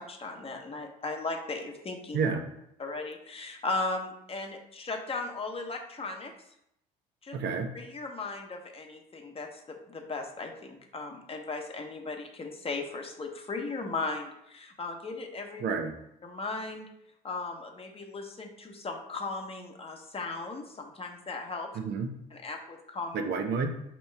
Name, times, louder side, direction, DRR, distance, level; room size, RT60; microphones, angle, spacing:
voice 1, 0.0-2.2 2.8-6.3 7.2-7.4 7.7-15.6 16.2-16.9 17.2-21.7 22.3-23.2, left 3 dB, 30° left, 3 dB, 0.9 m, -37 dB
voice 2, 7.3-7.7 15.6-15.9 21.7-22.1 23.1-23.7, right 5 dB, 55° right, 5 dB, 0.7 m, -29 dB
5.3 x 3.0 x 3.3 m, 0.77 s
hypercardioid pair, 65°, 21 cm